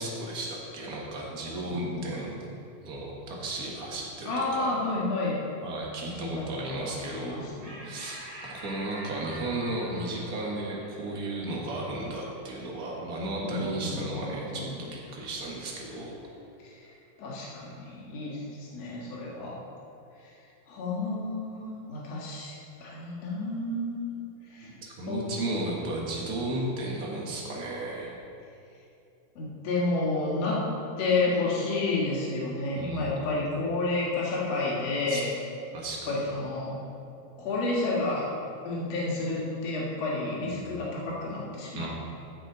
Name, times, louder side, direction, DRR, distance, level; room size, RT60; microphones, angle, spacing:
voice 1, 0.0-2.3 2.8-4.7 5.6-7.4 7.8-16.2 24.8-28.2 32.7-33.3 35.1-35.2 35.7-36.2 40.6-40.7 41.7-41.9, right 2 dB, 45° right, -2 dB, 1.2 m, -34 dB
voice 2, 1.6-2.2 4.3-5.4 6.0-7.8 13.4-14.8 17.2-19.5 20.7-22.5 22.8-24.2 24.5-24.7 25.1-25.4 29.4-30.6 31.0-35.3 36.0-36.7 37.4-38.2 38.6-41.9, left 2 dB, 60° left, -5 dB, 2.8 m, -30 dB
sound 1, 7.6-14.5, equal, 75° right, 3.5 m, -47 dB
14.0 x 6.2 x 3.9 m, 2.7 s
omnidirectional pair, 3.5 m